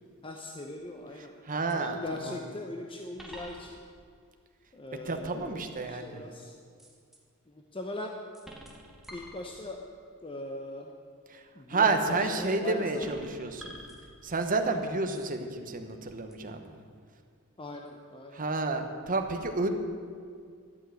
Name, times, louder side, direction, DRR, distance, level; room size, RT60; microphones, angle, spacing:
voice 1, 0.2-1.3 1.7-3.8 4.8-5.6 5.9-6.5 7.7-8.1 9.1-9.8 10.2-10.9 11.6-13.1 17.6-18.4, left 2 dB, 25° left, 2 dB, 0.8 m, -40 dB
sound 1, 0.6-1.0 1.7-1.8 3.2-4.1 6.8-7.2 8.3-9.9 12.3-12.6 13.0-14.6 15.1-15.4 16.3-16.4, equal, ahead, 1.5 m, -48 dB
voice 2, 1.2-2.4 5.0-6.2 11.3-11.4 11.7-13.8 14.2-16.8 18.3-19.7, right 3 dB, 40° right, 5 dB, 1.0 m, -30 dB
12.0 x 6.5 x 9.3 m, 2.2 s
head